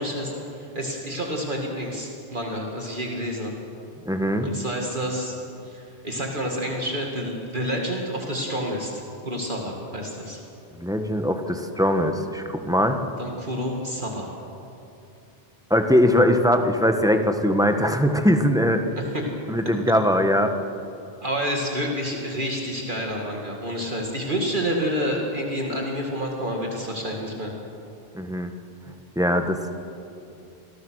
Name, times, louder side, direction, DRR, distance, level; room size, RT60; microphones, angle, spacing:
voice 1, 0.0-3.5 4.4-5.4 5.6-10.4 13.2-14.3 19.0-19.3 21.2-27.5, equal, 50° right, 0 dB, 2.4 m, -29 dB
voice 2, 4.0-4.5 10.8-13.0 15.7-18.8 19.5-20.5 28.1-28.5 29.2-29.7, equal, 5° right, 5 dB, 1.4 m, -21 dB
27.5 x 19.0 x 6.4 m, 2.7 s
omnidirectional pair, 1.1 m